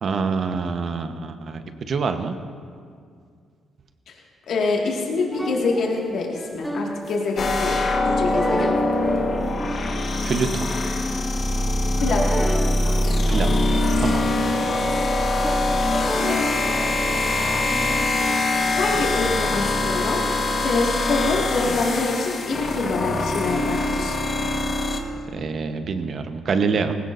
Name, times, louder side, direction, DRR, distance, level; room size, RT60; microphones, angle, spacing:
voice 1, 0.0-2.4 10.2-10.7 13.3-13.7 14.0-14.3 25.3-26.9, right 5 dB, 55° right, 7 dB, 1.0 m, -26 dB
voice 2, 4.5-8.7 12.0-12.4 18.7-20.2 20.6-24.2, left 3 dB, 70° left, -2 dB, 1.9 m, -25 dB
sound 1, 5.3-19.0, equal, ahead, 0.8 m, -32 dB
sound 2, 7.4-25.0, left 2 dB, 50° left, 1.3 m, -23 dB
19.0 x 16.5 x 2.6 m, 2.2 s
cardioid pair, 90°, 0 cm